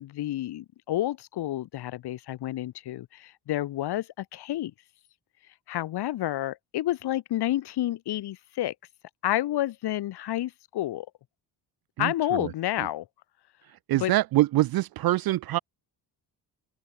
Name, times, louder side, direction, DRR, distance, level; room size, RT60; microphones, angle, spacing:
voice 1, 0.0-4.7 5.7-8.7 9.2-11.1 12.0-13.1 13.9-14.1, left 14 dB, 65° left, 1.4 m, -30 dB
voice 2, 12.0-12.5 13.9-15.6, right 16 dB, 60° right, 0.5 m, -24 dB
cardioid pair, 135°, 42 cm